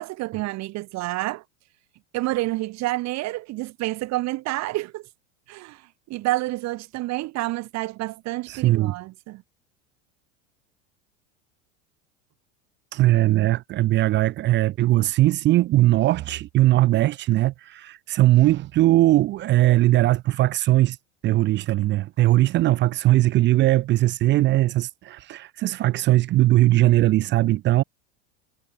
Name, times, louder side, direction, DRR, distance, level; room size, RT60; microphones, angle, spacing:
voice 1, 0.0-1.4 2.1-5.1 5.5-5.8 6.1-9.4, right 19 dB, 45° right, 1.3 m, -29 dB
voice 2, 8.5-8.9 12.9-21.0 21.2-27.8, right 16 dB, 30° right, 0.4 m, -20 dB
hypercardioid pair, 90°, 36 cm